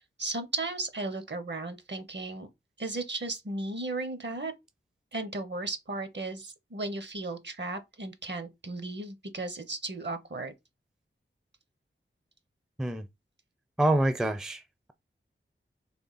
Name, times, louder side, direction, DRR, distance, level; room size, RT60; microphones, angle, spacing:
voice 1, 0.2-2.5 2.8-4.5 5.1-10.5, right 2 dB, 55° right, 0.9 m, -35 dB
voice 2, 13.8-14.6, right 1 dB, 5° right, 0.4 m, -26 dB
3.4 x 3.3 x 4.0 m
wide cardioid pair, 75°, 21 cm